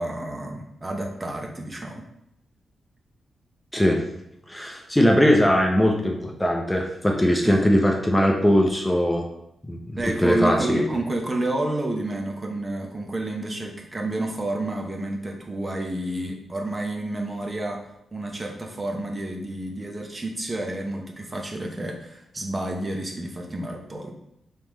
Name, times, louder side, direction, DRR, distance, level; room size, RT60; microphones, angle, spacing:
voice 1, 0.0-2.0 7.4-7.6 10.0-17.8 18.1-24.1, right 2 dB, 30° right, 1 dB, 0.7 m, -30 dB
voice 2, 4.5-9.3 9.7-9.8 10.2-10.9, equal, 10° left, 1 dB, 0.6 m, -20 dB
3.5 x 3.2 x 3.0 m, 0.79 s
cardioid pair, 60°, 0 cm